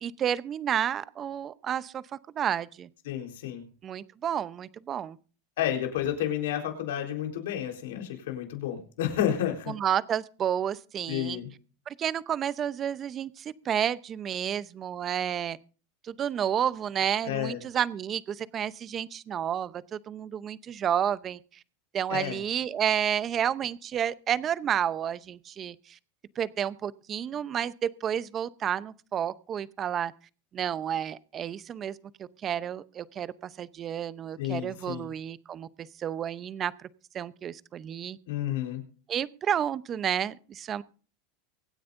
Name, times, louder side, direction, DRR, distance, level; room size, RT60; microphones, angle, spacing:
voice 1, 0.0-2.9 3.8-5.2 9.7-11.4 11.9-15.6 16.0-21.4 21.9-26.0 26.4-30.1 30.5-32.0 32.4-36.9 37.1-38.2 39.1-40.8, right 9 dB, 30° right, 16 dB, 0.7 m, -31 dB
voice 2, 3.0-3.6 5.6-9.7 11.1-11.5 17.2-17.6 22.1-22.4 34.4-35.1 38.3-38.8, left 11 dB, 80° left, 2 dB, 4.1 m, -31 dB
24.5 x 9.4 x 2.6 m, 0.39 s
supercardioid pair, 120°, 0 cm